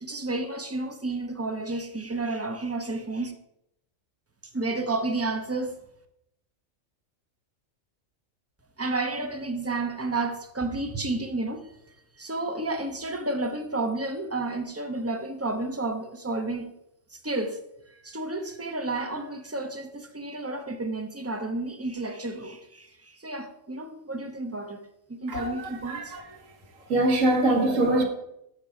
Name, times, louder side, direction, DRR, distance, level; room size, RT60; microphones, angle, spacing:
voice 1, 0.0-3.3 4.5-5.7 8.8-11.7 12.2-16.8 17.1-17.6 18.0-24.8 25.1-26.1, right 2 dB, 15° right, 0.5 m, -31 dB
voice 2, 25.3-26.2 26.9-28.0, right 1 dB, 80° right, 1.6 m, -23 dB
6.7 x 6.6 x 4.8 m
omnidirectional pair, 1.3 m